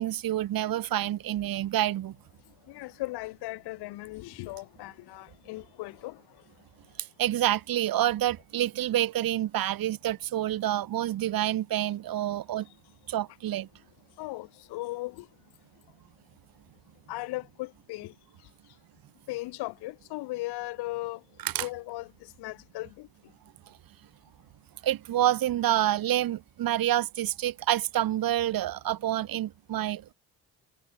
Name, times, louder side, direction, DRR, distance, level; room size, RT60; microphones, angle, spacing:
voice 1, 0.0-2.2 7.0-12.7 13.1-13.7 21.4-21.7 23.7-23.8 24.8-30.1, right 13 dB, 65° right, 2.0 m, -28 dB
voice 2, 2.7-6.2 14.2-15.3 17.1-18.1 19.3-21.2 21.6-23.1, left 20 dB, 85° left, 4.9 m, -37 dB
cardioid pair, 90°, 38 cm